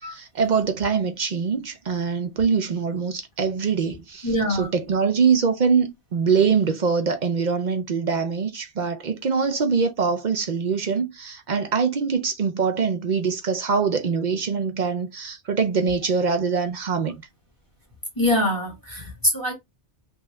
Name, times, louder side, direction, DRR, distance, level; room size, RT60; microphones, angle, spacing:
voice 1, 0.0-4.3 4.6-17.1, right 5 dB, 50° right, 0.6 m, -23 dB
voice 2, 4.2-4.7 18.1-19.5, left 1 dB, 20° left, 1.5 m, -23 dB
3.6 x 2.5 x 3.1 m
omnidirectional pair, 1.1 m